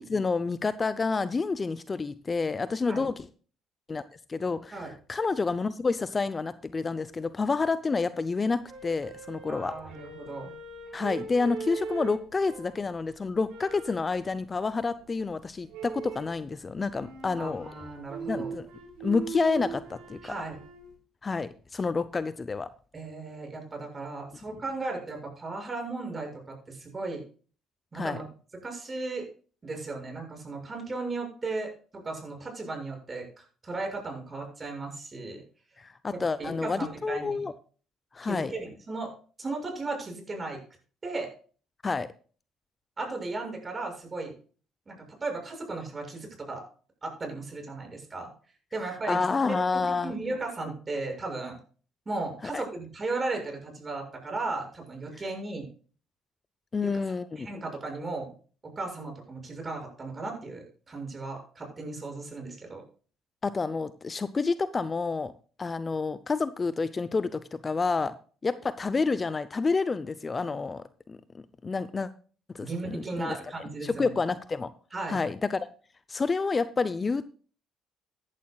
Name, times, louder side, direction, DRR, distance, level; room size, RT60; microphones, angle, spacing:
voice 1, 0.0-3.3 3.9-4.0 4.3-9.7 10.9-17.7 18.3-18.7 19.0-20.3 21.2-22.7 24.5-24.6 27.9-28.2 35.8-37.5 38.1-38.5 41.8-42.1 49.1-50.1 52.5-52.6 56.7-57.5 63.4-65.3 65.6-68.1 68.4-71.2 71.6-72.1 72.5-73.4 73.8-74.7 75.1-75.7 76.1-77.2, left 4 dB, 30° left, 14 dB, 0.7 m, -29 dB
sound 1, 8.7-12.9 13.5-14.1 15.7-16.4 16.9-20.9, right 5 dB, 75° right, 4.6 m, -40 dB
voice 2, 9.5-10.5 17.4-18.5 20.2-20.6 22.9-27.2 27.9-28.3 28.6-29.3 29.6-35.4 36.1-37.4 38.2-39.1 39.4-40.6 41.0-41.3 43.0-44.3 44.9-46.6 47.0-48.3 48.7-49.2 49.5-51.6 52.0-55.7 56.8-56.9 57.4-58.3 58.8-62.8 72.6-74.1 74.9-75.2, right 3 dB, 30° right, 3 dB, 6.6 m, -36 dB
15.0 x 11.0 x 2.4 m, 0.39 s
hypercardioid pair, 60°, 0 cm